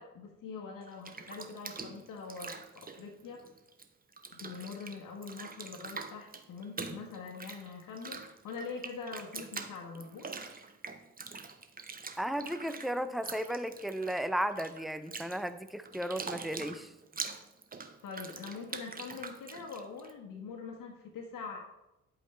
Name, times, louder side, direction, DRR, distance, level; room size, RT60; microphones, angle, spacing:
voice 1, 0.0-3.4 4.3-10.3 18.0-21.6, left 5 dB, 50° left, 1 dB, 1.5 m, -44 dB
Bathtub (filling or washing), 0.8-3.9 4.1-20.1, right 4 dB, 20° right, 1.0 m, -44 dB
voice 2, 12.2-16.9, equal, ahead, 11 dB, 0.6 m, -34 dB
10.0 x 8.4 x 3.3 m, 0.93 s
figure-of-eight pair, 50°, 41 cm